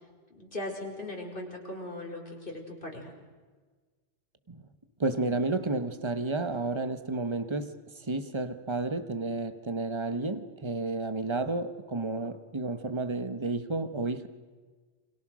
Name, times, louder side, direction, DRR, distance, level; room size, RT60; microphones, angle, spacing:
voice 1, 0.3-3.1, left 1 dB, 50° left, 1 dB, 5.7 m, -39 dB
voice 2, 5.0-14.3, right 3 dB, 25° right, 10 dB, 1.5 m, -31 dB
29.0 x 26.5 x 6.4 m, 1.4 s
omnidirectional pair, 1.2 m